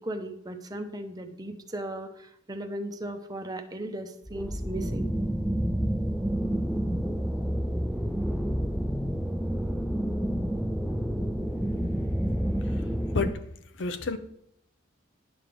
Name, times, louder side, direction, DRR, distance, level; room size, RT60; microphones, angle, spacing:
voice 1, 0.0-5.1, right 1 dB, 20° right, 0.7 m, -37 dB
sound 1, 4.3-13.3, equal, ahead, 0.3 m, -29 dB
voice 2, 13.8-14.2, left 3 dB, 80° left, 0.7 m, -29 dB
10.5 x 3.7 x 6.8 m
head